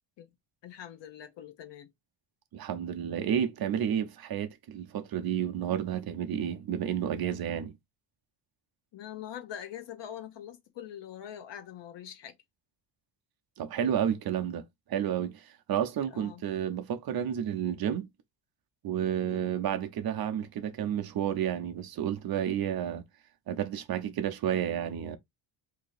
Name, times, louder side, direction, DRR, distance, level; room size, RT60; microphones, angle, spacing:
voice 1, 0.6-1.9 8.9-12.3 16.1-16.4 19.2-19.5, left 10 dB, 60° left, 0.8 m, -43 dB
voice 2, 2.5-7.7 13.6-14.6 14.9-18.1 18.8-23.0 23.5-25.2, right 9 dB, 50° right, 0.6 m, -31 dB
2.8 x 2.7 x 3.9 m
cardioid pair, 175°, 49 cm